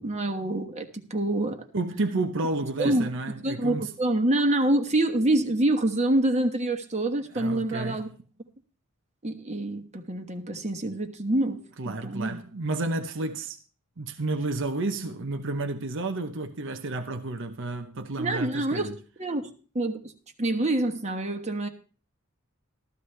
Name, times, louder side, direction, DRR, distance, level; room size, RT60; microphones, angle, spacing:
voice 1, 0.0-1.7 2.8-3.1 3.4-8.1 9.2-12.4 18.2-20.0 20.4-21.7, right 1 dB, 35° right, 1.3 m, -26 dB
voice 2, 1.7-3.9 7.3-8.0 11.8-13.6 14.0-19.0, right 2 dB, 65° right, 0.9 m, -31 dB
14.0 x 13.0 x 3.3 m
head